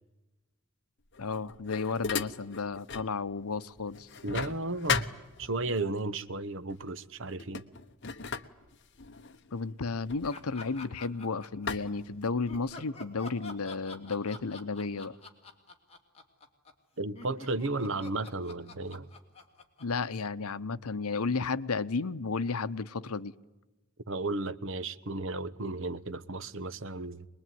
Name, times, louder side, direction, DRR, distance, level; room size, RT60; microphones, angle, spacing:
sound 1, 1.1-3.2 3.5-5.8 6.7-6.9 7.3-11.1 11.7-12.8, left 6 dB, 55° left, 1.1 m, -37 dB
voice 1, 1.2-4.1 9.5-15.2 19.8-23.3, left 4 dB, 85° left, 0.9 m, -33 dB
voice 2, 4.2-5.1 5.4-7.6 17.0-19.1 24.1-27.3, right 2 dB, 60° right, 1.1 m, -34 dB
sound 2, 10.3-11.9 12.5-20.7, left 3 dB, 30° left, 2.8 m, -47 dB
23.5 x 21.5 x 9.4 m
head